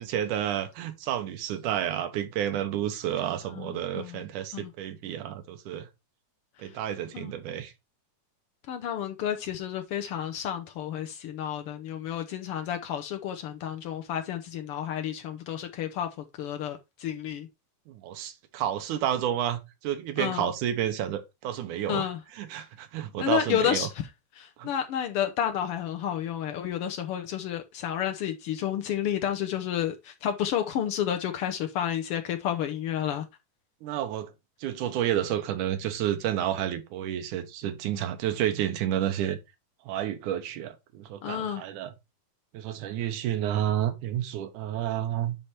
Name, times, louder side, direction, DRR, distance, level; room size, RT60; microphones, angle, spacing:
voice 1, 0.1-5.9 6.6-7.7 17.9-22.1 22.4-23.9 24.6-24.7 33.8-34.3 34.6-39.4 39.9-41.9 42.5-45.4, right 11 dB, 85° right, 2.4 m, -30 dB
voice 2, 3.6-4.2 4.5-4.7 6.6-6.7 7.1-7.3 8.7-17.5 20.2-20.5 21.9-22.2 23.2-24.1 24.3-33.3 37.9-38.0 41.2-41.6, left 10 dB, 85° left, 1.2 m, -31 dB
10.0 x 3.4 x 4.1 m
omnidirectional pair, 3.5 m